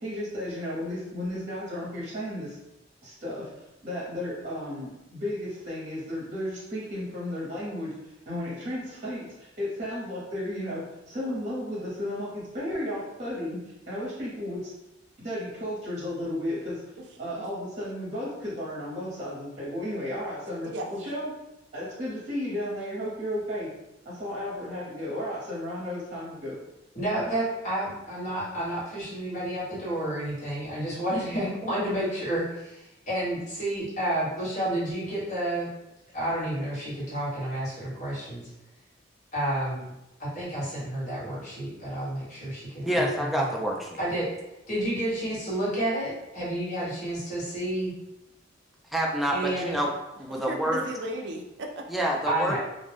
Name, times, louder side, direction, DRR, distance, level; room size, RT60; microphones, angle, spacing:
voice 1, 0.0-2.6 3.0-3.5 3.8-8.0 8.3-13.6 13.9-14.7 15.2-16.8 17.2-21.3 21.7-23.7 24.0-26.6, left 1 dB, 40° right, -6 dB, 0.9 m, -33 dB
voice 2, 26.9-35.7 36.1-38.5 39.3-39.9 40.2-43.5 44.0-44.3 44.7-47.9 49.3-49.7 52.3-52.6, right 1 dB, 40° left, -8 dB, 1.3 m, -30 dB
voice 3, 42.8-44.0 48.9-49.9 50.2-50.8 51.9-52.6, right 1 dB, ahead, -2 dB, 0.4 m, -27 dB
voice 4, 50.3-51.9, right 1 dB, 65° right, 2 dB, 0.4 m, -36 dB
2.5 x 2.2 x 3.3 m, 0.94 s
head